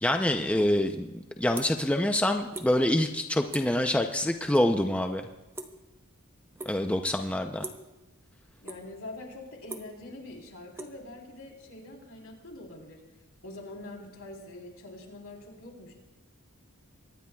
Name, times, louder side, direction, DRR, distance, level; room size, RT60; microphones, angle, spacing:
voice 1, 0.0-5.3 6.6-7.6, left 1 dB, 5° left, 4 dB, 0.6 m, -26 dB
sound 1, 0.6-0.7 1.1-2.0 2.2-2.7 3.0-3.2 3.5-3.8 4.1-4.7 4.9-6.1 6.6-7.0 7.6-7.9 8.4-9.0 9.4-11.6, right 2 dB, 10° right, 0.9 m, -42 dB
voice 2, 8.6-13.0 13.4-15.9, left 2 dB, 70° left, 0 dB, 3.7 m, -44 dB
23.5 x 20.0 x 2.3 m, 1.0 s
head